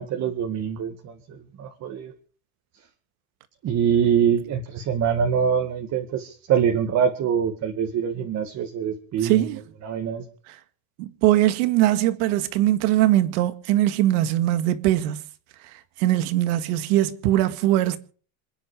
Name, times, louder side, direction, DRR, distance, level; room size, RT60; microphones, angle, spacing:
voice 1, 0.0-2.1 3.6-9.5 9.8-10.2, right 8 dB, 35° right, 2.2 m, -24 dB
voice 2, 9.2-9.6 11.0-15.2 16.0-18.0, right 14 dB, 80° right, 2.1 m, -21 dB
27.0 x 10.0 x 5.1 m
cardioid pair, 160°, 43 cm